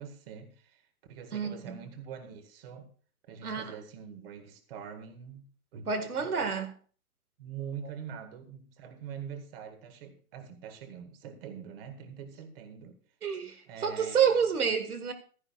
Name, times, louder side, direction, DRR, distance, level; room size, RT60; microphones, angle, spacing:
voice 1, 0.0-2.9 3.3-5.5 5.7-6.5 7.4-13.0 13.7-14.4, right 7 dB, 40° right, 1.8 m, -44 dB
voice 2, 1.3-1.8 3.4-3.7 5.9-6.7 13.2-15.1, right 7 dB, 90° right, 1.9 m, -29 dB
15.5 x 12.0 x 2.4 m
hypercardioid pair, 150°, 44 cm